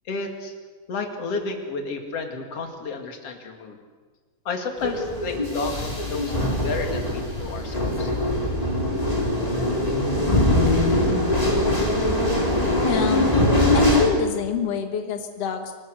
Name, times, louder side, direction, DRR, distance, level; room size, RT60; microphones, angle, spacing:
voice 1, 0.1-0.5 0.9-3.8 4.4-8.1, left 3 dB, 45° left, 3 dB, 2.5 m, -31 dB
sound 1, 4.8-14.0, left 1 dB, 10° left, 3.1 m, -22 dB
voice 2, 12.9-13.3 13.7-15.7, left 6 dB, 85° left, 5 dB, 1.3 m, -26 dB
25.5 x 19.0 x 6.5 m, 1.4 s
omnidirectional pair, 5.2 m